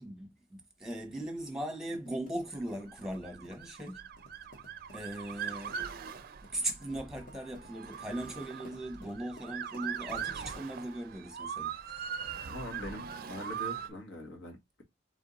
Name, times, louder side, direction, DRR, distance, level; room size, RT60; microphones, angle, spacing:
voice 1, 0.0-4.1 4.9-5.8 6.5-11.7, right 1 dB, 5° right, 1.1 m, -39 dB
sound 1, 1.9-11.2, left 1 dB, 45° left, 1.3 m, -57 dB
Motor vehicle (road) / Siren, 2.8-13.9, right 7 dB, 50° right, 0.4 m, -41 dB
voice 2, 12.5-14.8, left 1 dB, 75° left, 1.5 m, -43 dB
3.5 x 3.4 x 3.9 m
head